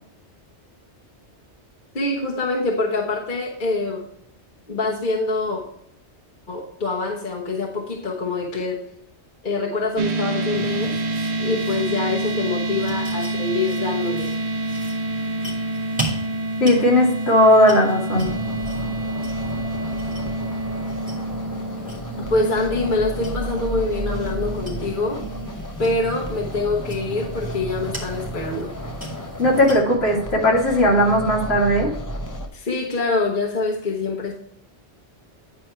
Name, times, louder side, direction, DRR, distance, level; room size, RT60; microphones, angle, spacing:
voice 1, 1.9-4.0 4.7-5.6 6.5-8.8 9.4-11.0 11.4-14.3 22.2-25.2 25.8-28.7 32.5-34.3, left 3 dB, 45° left, -3 dB, 1.3 m, -25 dB
sound 1, 10.0-25.5, right 2 dB, 70° right, 0.9 m, -28 dB
sound 2, 10.5-29.8, right 2 dB, 5° right, 2.2 m, -39 dB
voice 2, 16.6-18.3 29.4-31.9, left 1 dB, 65° left, -3 dB, 2.3 m, -17 dB
sound 3, 18.1-32.5, equal, 20° left, 0.7 m, -33 dB
9.7 x 4.5 x 4.4 m, 0.72 s
omnidirectional pair, 1.1 m